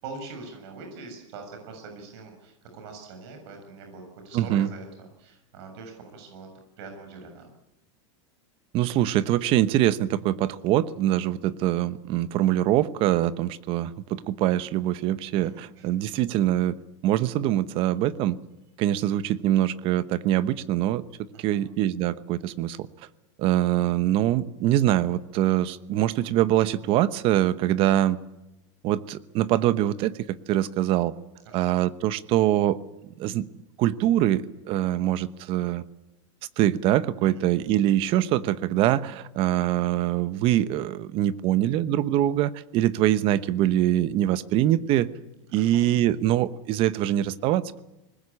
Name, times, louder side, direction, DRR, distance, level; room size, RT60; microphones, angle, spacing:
voice 1, 0.0-6.5 6.8-7.5 15.3-15.9 21.3-21.6 31.5-31.8 37.4-37.5 45.5-45.8, right 4 dB, 60° right, 4 dB, 7.1 m, -43 dB
voice 2, 4.3-4.7 8.7-16.8 17.0-18.4 18.8-21.0 21.4-22.9 23.4-28.2 28.8-31.1 31.5-32.8 33.2-33.5 33.8-35.8 36.6-45.1 45.5-47.8, right 13 dB, 35° right, 15 dB, 1.0 m, -24 dB
25.0 x 20.5 x 8.6 m, 0.93 s
supercardioid pair, 165°, 16 cm